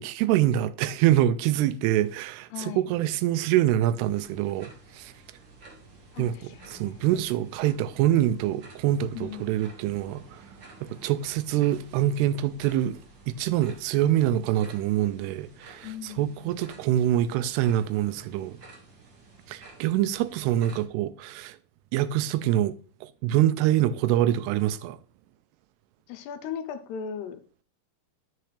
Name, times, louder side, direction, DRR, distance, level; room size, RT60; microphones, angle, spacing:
voice 1, 0.0-5.1 6.2-10.2 10.8-13.0 13.3-18.6 19.5-21.6 21.9-22.8 23.0-25.0, right 12 dB, 85° right, 2.6 m, -25 dB
voice 2, 2.5-2.9 6.1-7.1 9.1-9.6 15.8-16.7 26.1-27.4, left 8 dB, 90° left, 3.0 m, -38 dB
sound 1, 4.0-20.9, right 3 dB, 45° right, 1.6 m, -51 dB
10.5 x 6.8 x 3.3 m
omnidirectional pair, 4.6 m